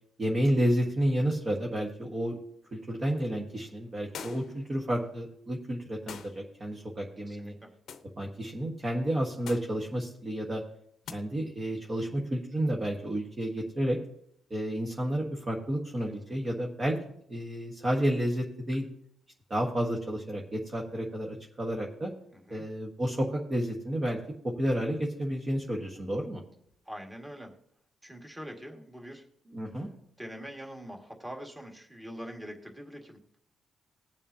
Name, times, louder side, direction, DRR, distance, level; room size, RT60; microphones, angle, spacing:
voice 1, 0.2-2.4 2.7-7.5 8.2-10.6 11.1-14.0 14.5-17.0 17.3-18.9 19.5-22.1 22.5-24.2 24.4-26.4 29.5-29.9, equal, 30° right, -1 dB, 1.5 m, -31 dB
sound 1, 4.1-4.6 6.1-6.4 7.9-8.1 9.5-9.8 11.0-11.2, left 7 dB, 70° left, 0.8 m, -43 dB
voice 2, 7.2-7.7 16.3-16.4 22.3-22.6 26.9-27.5 28.0-29.6 30.2-33.2, equal, 10° right, 1 dB, 2.0 m, -44 dB
20.0 x 7.1 x 2.8 m, 0.68 s
cardioid pair, 115°, 0 cm